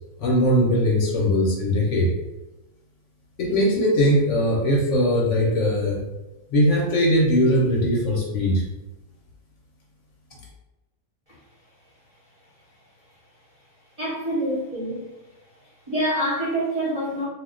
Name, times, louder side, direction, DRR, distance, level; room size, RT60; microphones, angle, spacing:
voice 1, 0.2-2.1 3.4-6.0 6.5-8.6, equal, 60° left, -3 dB, 0.9 m, -20 dB
voice 2, 14.0-15.0 15.9-17.2, right 1 dB, 35° right, -7 dB, 0.7 m, -26 dB
2.4 x 2.2 x 3.6 m, 1.0 s
omnidirectional pair, 1.6 m